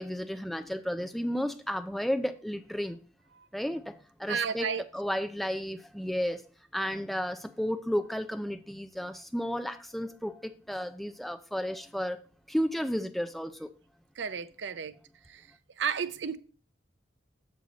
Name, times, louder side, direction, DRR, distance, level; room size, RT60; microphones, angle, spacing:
voice 1, 0.0-3.0 3.5-6.4 6.7-12.2 12.5-13.7, equal, ahead, 0.3 m, -33 dB
voice 2, 4.3-4.8 14.2-14.9 15.3-15.4 15.8-16.4, right 6 dB, 75° right, 0.6 m, -32 dB
6.9 x 6.3 x 3.9 m
head